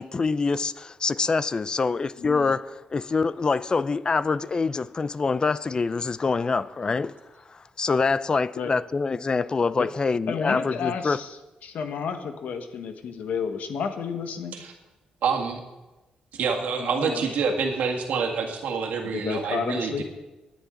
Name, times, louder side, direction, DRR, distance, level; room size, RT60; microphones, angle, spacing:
voice 1, 0.0-7.2 7.5-11.2, left 4 dB, 30° left, 0.4 m, -25 dB
voice 2, 2.2-2.6 8.6-8.7 9.8-9.9 10.3-11.4 11.6-14.6 16.8-17.2 19.1-20.0, left 6 dB, 75° left, 1.4 m, -31 dB
voice 3, 15.2-15.6 16.3-20.0, right 5 dB, 85° right, 2.0 m, -27 dB
19.0 x 9.9 x 3.9 m
cardioid pair, 115°, 3 cm